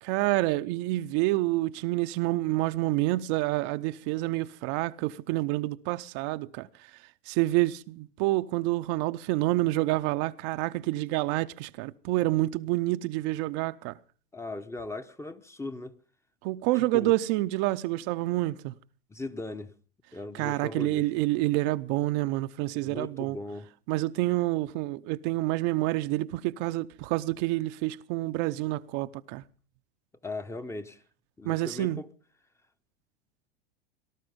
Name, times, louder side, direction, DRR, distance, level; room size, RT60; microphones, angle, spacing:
voice 1, 0.0-6.7 7.3-14.0 16.4-18.7 20.3-23.4 23.9-29.4 31.4-32.0, right 18 dB, 55° right, 0.7 m, -28 dB
voice 2, 14.3-16.0 16.9-17.1 19.1-19.7 20.1-21.1 22.8-23.7 30.2-31.0 31.4-32.1, left 2 dB, 10° left, 0.9 m, -38 dB
18.5 x 12.0 x 5.2 m
hypercardioid pair, 110°, 29 cm